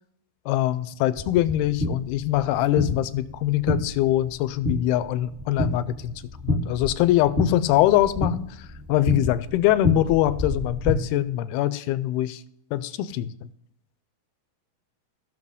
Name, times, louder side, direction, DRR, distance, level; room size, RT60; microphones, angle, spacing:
voice 1, 0.5-6.1 6.4-8.6 8.9-12.4 12.7-13.3, left 14 dB, 85° left, 2.4 m, -23 dB
sound 1, 1.2-11.0, left 2 dB, 35° right, 1.0 m, -29 dB
16.5 x 6.2 x 3.6 m
omnidirectional pair, 4.5 m